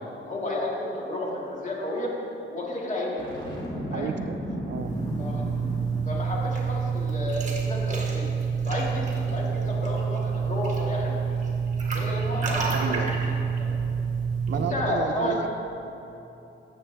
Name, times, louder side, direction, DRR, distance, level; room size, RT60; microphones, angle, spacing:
voice 1, 0.2-2.1 2.5-3.3 3.9-4.1 5.2-5.4 6.0-8.3 8.6-11.2 11.9-13.2 13.6-13.7 14.5-15.4, left 1 dB, 40° left, -3 dB, 2.1 m, -32 dB
Boom, 3.2-6.4, equal, 20° left, 2.2 m, -34 dB
voice 2, 3.9-4.4 4.7-4.9 12.7-13.2 14.5-15.5, right 7 dB, 60° right, 8 dB, 0.6 m, -32 dB
sound 1, 4.7-14.7, right 5 dB, 35° right, 1.6 m, -28 dB
14.5 x 7.8 x 3.4 m, 2.9 s
cardioid pair, 120°, 20 cm